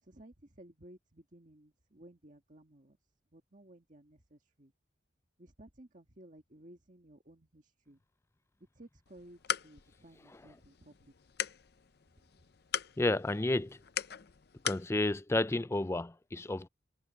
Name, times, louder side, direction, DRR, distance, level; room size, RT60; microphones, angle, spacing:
voice 1, 0.0-3.0 3.3-4.7 5.4-8.0 8.7-11.1 12.2-12.3, right 1 dB, 40° right, 1.9 m, -57 dB
sound 1, 9.1-14.9, left 9 dB, 55° left, 0.6 m, -40 dB
voice 2, 13.0-13.8 14.6-16.7, left 2 dB, 15° left, 0.4 m, -31 dB
head